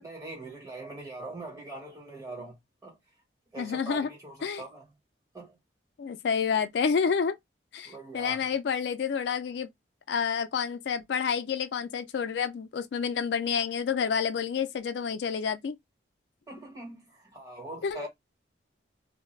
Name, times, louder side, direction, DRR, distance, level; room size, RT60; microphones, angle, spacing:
voice 1, 0.0-3.0 3.5-4.9 5.3-5.6 7.8-8.4 16.5-18.1, right 2 dB, 20° right, 1.2 m, -42 dB
voice 2, 3.6-4.1 4.4-4.6 6.0-7.4 7.7-9.7 10.1-15.7 17.8-18.1, left 6 dB, 70° left, 0.3 m, -29 dB
2.3 x 2.0 x 3.1 m
head